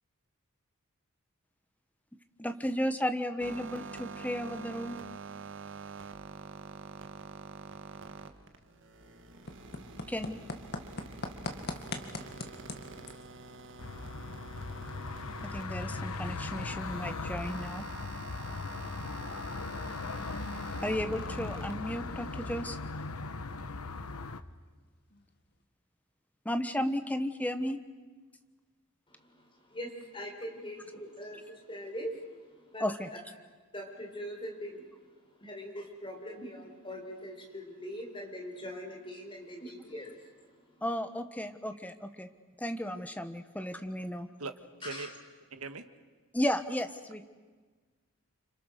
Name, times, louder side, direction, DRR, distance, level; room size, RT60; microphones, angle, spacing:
voice 1, 2.4-5.0 10.1-10.4 15.4-17.9 20.8-22.8 26.4-27.8 32.8-33.1 40.8-42.3 42.6-44.3 46.3-47.2, equal, 5° left, 8 dB, 1.3 m, -34 dB
sound 1, 3.4-21.7, right 4 dB, 60° right, 1.8 m, -47 dB
sound 2, 7.5-25.7, left 2 dB, 50° left, 2.1 m, -48 dB
sound 3, 13.8-24.4, left 3 dB, 85° left, 1.1 m, -38 dB
voice 2, 29.1-33.2 33.7-35.1 35.4-40.8 44.8-45.1, equal, 25° left, 2 dB, 4.9 m, -42 dB
voice 3, 45.5-45.9, right 3 dB, 80° right, 9 dB, 1.7 m, -39 dB
30.0 x 26.5 x 6.7 m, 1.4 s
head